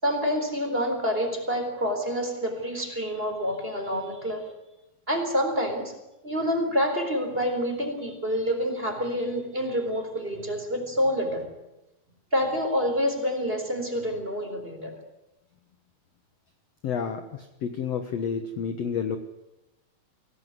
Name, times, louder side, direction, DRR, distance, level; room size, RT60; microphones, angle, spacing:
voice 1, 0.0-4.5 5.1-5.9 6.2-11.5 12.3-14.9, equal, 15° right, 4 dB, 3.8 m, -27 dB
voice 2, 16.8-19.2, left 7 dB, 60° left, 7 dB, 1.8 m, -30 dB
24.0 x 17.5 x 9.5 m, 0.96 s
omnidirectional pair, 4.5 m